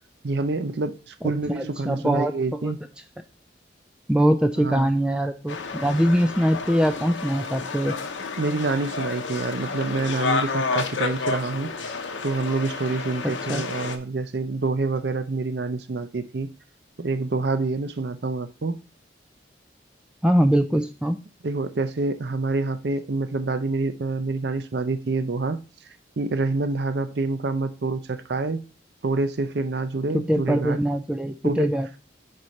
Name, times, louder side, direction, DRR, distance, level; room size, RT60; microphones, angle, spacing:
voice 1, 0.2-2.8 4.6-4.9 8.4-11.7 12.2-16.5 17.0-18.8 21.4-25.6 26.2-28.6 29.0-30.8 31.4-31.7, right 3 dB, 60° right, 0.6 m, -27 dB
voice 2, 1.6-2.7 4.1-7.9 13.5-13.6 20.2-21.2 30.1-32.0, equal, 5° right, 0.3 m, -22 dB
sound 1, 5.5-14.0, left 4 dB, 80° left, 0.8 m, -30 dB
4.8 x 4.3 x 5.1 m
head